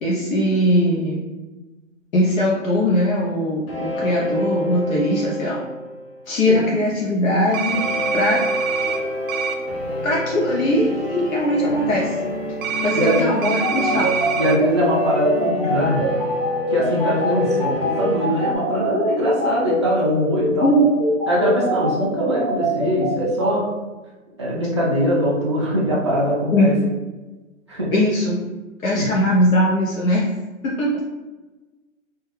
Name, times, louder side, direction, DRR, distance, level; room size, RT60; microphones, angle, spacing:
voice 1, 0.0-1.2 2.1-5.6 6.3-7.8 8.1-8.4 10.0-12.1 12.8-14.1 20.6-20.9 26.5-26.7 27.9-28.4 28.8-30.2 30.6-30.9, left 1 dB, 80° left, -5 dB, 0.8 m, -20 dB
sound 1, 3.7-6.8 7.7-18.6, equal, 50° left, 0.6 m, -28 dB
sound 2, 7.5-9.0 9.3-9.5 12.6-14.6, right 6 dB, 85° right, 0.5 m, -26 dB
sound 3, 13.6-23.5, right 1 dB, 10° left, 1.1 m, -24 dB
voice 2, 14.4-16.0 16.7-20.7 21.3-23.6 24.4-26.7 27.7-27.9 28.9-29.1, equal, 25° right, -6 dB, 0.3 m, -21 dB
2.3 x 2.2 x 3.1 m, 1.2 s
hypercardioid pair, 150°, 40 cm